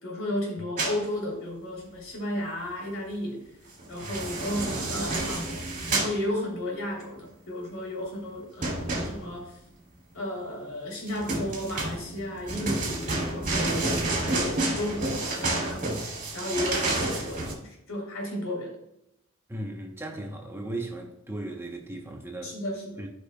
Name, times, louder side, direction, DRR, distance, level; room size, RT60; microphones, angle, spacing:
voice 1, 0.0-3.4 3.9-5.6 5.9-9.6 10.1-16.1 16.3-18.7 22.4-23.0, left 1 dB, 65° left, 3.3 m, -34 dB
sound 1, 0.8-1.0 3.8-6.2 8.6-9.5 11.1-17.5, right 2 dB, 40° right, 2.7 m, -29 dB
voice 2, 19.5-22.6 23.0-23.1, right 1 dB, 10° right, 0.9 m, -37 dB
14.5 x 5.3 x 2.3 m
head